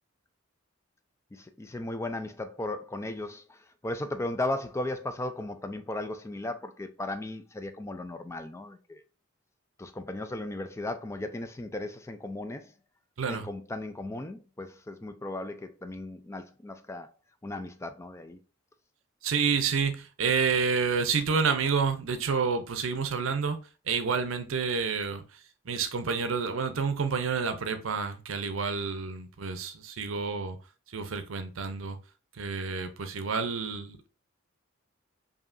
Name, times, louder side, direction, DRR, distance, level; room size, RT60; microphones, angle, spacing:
voice 1, 1.3-3.6 3.8-9.0 9.8-12.7 13.3-17.1 17.4-18.4, left 2 dB, 15° left, 0.4 m, -36 dB
voice 2, 19.2-23.6 23.9-30.6 30.9-32.0 32.3-34.1, right 5 dB, 75° right, 0.6 m, -29 dB
5.0 x 2.7 x 2.5 m
head